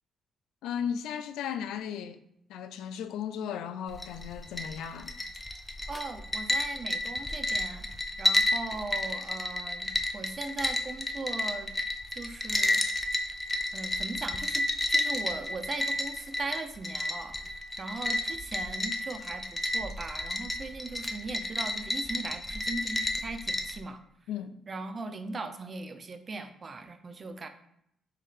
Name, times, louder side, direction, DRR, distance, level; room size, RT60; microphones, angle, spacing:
voice 1, 0.6-2.2 2.5-5.1 24.3-24.6, left 8 dB, 85° left, 0.3 m, -35 dB
sound 1, 3.9-23.8, left 1 dB, 15° left, 0.4 m, -31 dB
voice 2, 5.9-7.9 8.2-11.7 12.2-12.8 13.7-17.4 17.8-24.0 24.7-27.5, right 3 dB, 35° right, 0.5 m, -39 dB
4.5 x 3.1 x 3.6 m
cardioid pair, 90°, 0 cm